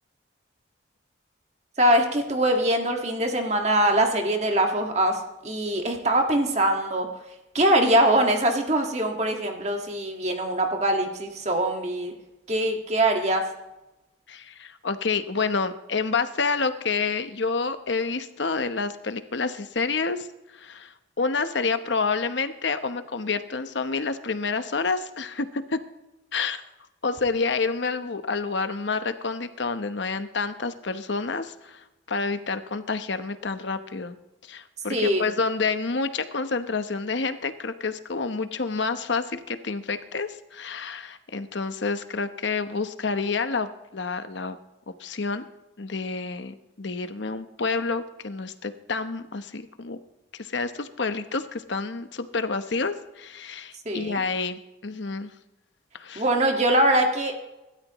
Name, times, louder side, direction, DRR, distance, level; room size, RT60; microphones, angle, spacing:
voice 1, 1.8-5.2 5.4-7.1 7.5-12.1 12.5-13.5 34.9-35.2 53.9-54.2 56.2-57.4, right 1 dB, 35° right, 2 dB, 1.8 m, -23 dB
voice 2, 14.3-20.3 20.5-25.8 26.3-26.6 27.0-34.2 34.4-44.6 45.0-45.4 45.8-50.0 50.4-55.3 55.9-56.2, left 4 dB, 70° left, 10 dB, 0.9 m, -28 dB
25.5 x 13.0 x 3.1 m, 0.98 s
head